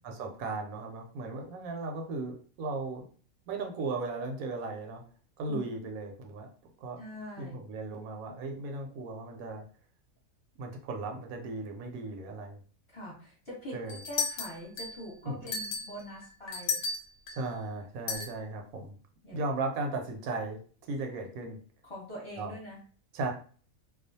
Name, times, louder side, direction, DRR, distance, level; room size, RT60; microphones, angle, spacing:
voice 1, 0.0-3.1 3.5-5.0 5.4-6.5 6.8-7.0 7.4-9.6 10.6-12.6 13.7-14.0 15.2-15.5 17.3-18.9 19.3-20.6 20.9-21.6 22.4-22.5 23.1-23.3, right 3 dB, 80° right, 3 dB, 1.0 m, -36 dB
voice 2, 7.0-7.6 12.9-16.8 19.2-19.4 21.8-22.8, left 1 dB, 25° left, -6 dB, 1.0 m, -43 dB
sound 1, 13.9-15.1 15.5-17.4 18.1-18.3, left 4 dB, 65° left, 0.9 m, -34 dB
2.4 x 2.2 x 2.6 m, 0.43 s
omnidirectional pair, 1.5 m